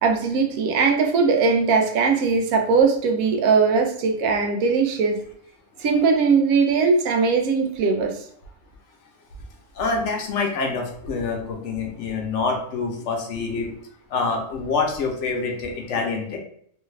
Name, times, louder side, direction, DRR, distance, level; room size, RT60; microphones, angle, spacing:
voice 1, 0.0-5.2 5.8-8.2, right 5 dB, 90° right, 4 dB, 1.0 m, -20 dB
voice 2, 9.8-13.8 14.1-16.4, left 4 dB, 65° left, 2 dB, 0.9 m, -26 dB
3.2 x 2.2 x 3.1 m, 0.62 s
omnidirectional pair, 1.4 m